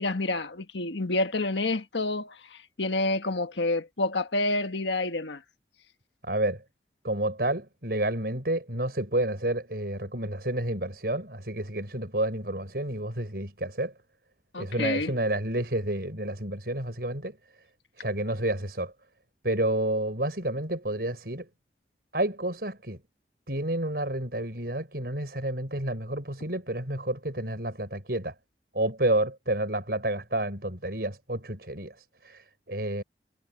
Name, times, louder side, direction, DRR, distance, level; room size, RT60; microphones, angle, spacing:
voice 1, 0.0-5.4 14.5-15.1, left 2 dB, 85° left, 1.6 m, -28 dB
voice 2, 6.2-6.6 7.0-13.9 14.6-17.6 18.0-18.9 19.4-21.5 22.1-23.0 23.5-28.4 28.7-33.0, right 1 dB, 60° right, 5.8 m, -30 dB
head